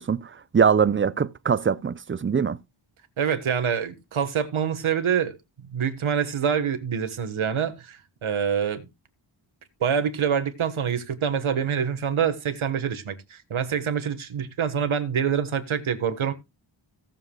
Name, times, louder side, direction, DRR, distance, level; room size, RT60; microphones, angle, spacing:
voice 1, 0.0-2.6, right 6 dB, 25° right, 0.4 m, -22 dB
voice 2, 3.2-5.4 5.7-8.8 9.8-16.3, right 7 dB, 80° right, 1.5 m, -26 dB
17.5 x 7.3 x 2.3 m
wide cardioid pair, 115°, 49 cm